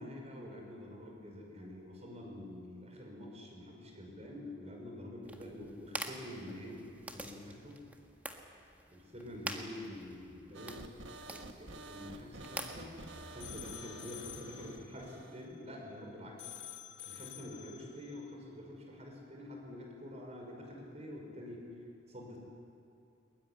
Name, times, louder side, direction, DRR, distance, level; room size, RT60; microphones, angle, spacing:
voice 1, 0.0-7.8 8.9-10.9 11.3-16.3 17.0-21.7 22.1-22.4, left 1 dB, 35° right, 0 dB, 6.1 m, -47 dB
sound 1, 5.2-14.2, right 1 dB, 10° right, 1.6 m, -47 dB
sound 2, 10.5-15.5, right 3 dB, 75° right, 1.4 m, -50 dB
sound 3, 13.0-16.0 16.4-18.3, left 11 dB, 75° left, 1.6 m, -50 dB
22.0 x 21.5 x 9.8 m, 2.6 s
head